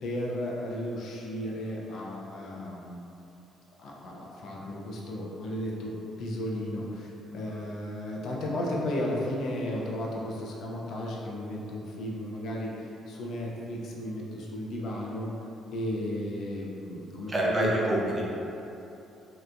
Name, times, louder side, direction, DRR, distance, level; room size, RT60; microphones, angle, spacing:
voice 1, 0.0-3.0 3.8-15.3 15.7-17.7, left 1 dB, 65° left, -3 dB, 0.5 m, -34 dB
voice 2, 17.3-18.2, right 1 dB, 20° right, -5 dB, 0.6 m, -26 dB
3.3 x 2.9 x 2.5 m, 2.9 s
cardioid pair, 110°, 0 cm